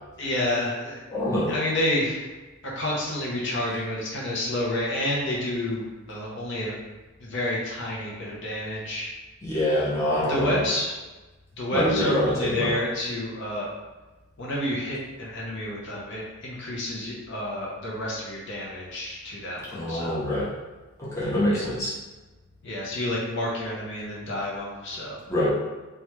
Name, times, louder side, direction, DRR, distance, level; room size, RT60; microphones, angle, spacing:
voice 1, 0.2-1.0 1.5-2.3 2.7-6.7 7.2-9.1 10.2-11.0 11.6-13.7 14.4-20.2 21.5-21.6 22.6-25.2, left 1 dB, 55° left, -5 dB, 0.6 m, -29 dB
voice 2, 1.1-1.5 9.4-10.6 11.7-12.7 19.7-20.5 21.0-21.9 25.3-25.5, left 1 dB, 15° left, -9 dB, 0.7 m, -25 dB
3.2 x 2.3 x 2.9 m, 1.2 s
head